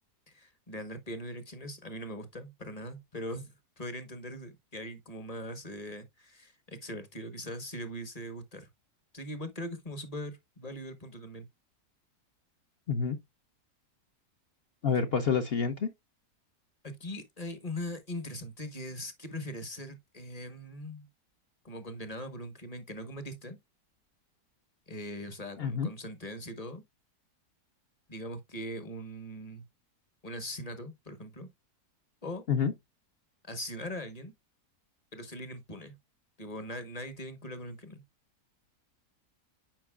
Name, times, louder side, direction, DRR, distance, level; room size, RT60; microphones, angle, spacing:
voice 1, 0.3-8.7 9.1-11.5 16.8-21.1 21.6-23.6 24.9-26.8 28.1-29.6 30.2-31.5 32.2-32.4 33.4-34.3 35.1-35.9 36.4-38.0, equal, 30° left, 1.0 m, -41 dB
voice 2, 14.8-15.9 25.6-25.9 32.5-32.7, left 6 dB, 55° left, 0.7 m, -28 dB
9.0 x 5.2 x 2.3 m
omnidirectional pair, 1.7 m